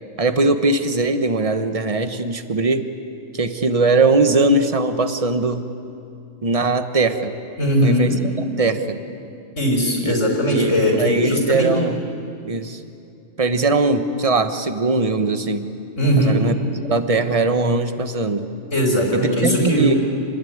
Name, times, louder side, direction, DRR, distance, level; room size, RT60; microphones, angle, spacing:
voice 1, 0.2-2.9 3.3-5.6 6.4-7.3 7.8-8.1 8.6-9.0 10.0-10.1 10.4-10.7 11.0-12.0 12.4-12.8 13.4-15.7 16.2-16.6 16.9-18.5 19.4-19.9, right 3 dB, 30° right, 8 dB, 1.2 m, -20 dB
voice 2, 7.6-8.2 9.6-11.7 16.0-16.4 18.7-20.0, equal, 85° left, 0 dB, 4.9 m, -19 dB
28.0 x 20.0 x 9.5 m, 2.6 s
omnidirectional pair, 1.3 m